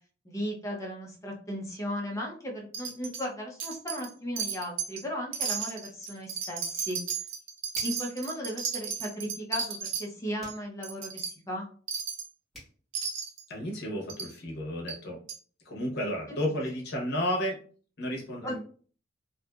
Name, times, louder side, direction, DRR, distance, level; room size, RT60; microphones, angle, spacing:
voice 1, 0.2-7.0 7.8-11.7 18.4-18.6, equal, 15° left, -1 dB, 0.6 m, -36 dB
Wind chime, 2.7-3.3 3.6-4.1 4.4-5.0 5.3-10.0 10.5-10.6 10.8-11.3 11.9-12.3 12.9-13.4 14.1-14.3 14.9-15.0 15.3-15.4, right 7 dB, 70° right, 0.6 m, -34 dB
sound 1, 7.7-8.1 10.4-10.7 12.2-12.3 12.5-12.8, left 1 dB, ahead, 1.3 m, -45 dB
voice 2, 13.5-15.2 15.6-17.6 18.0-18.6, equal, 60° left, -1 dB, 0.8 m, -32 dB
2.6 x 2.5 x 2.2 m, 0.43 s
head